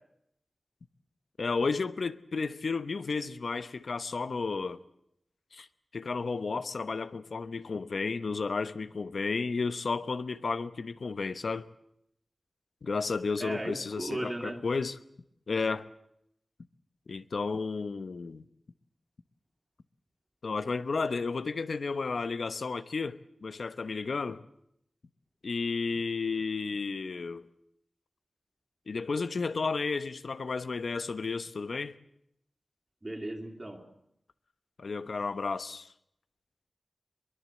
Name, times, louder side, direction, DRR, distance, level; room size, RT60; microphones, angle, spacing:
voice 1, 1.4-4.8 5.5-5.7 5.9-11.7 12.8-15.0 15.5-15.9 17.1-18.5 20.4-24.4 25.4-27.4 28.9-31.9 34.8-35.9, left 4 dB, 85° left, 1.0 m, -32 dB
voice 2, 13.4-14.6 33.0-33.9, right 1 dB, 30° right, 2.9 m, -36 dB
22.5 x 21.5 x 7.6 m
wide cardioid pair, 65°, 0 cm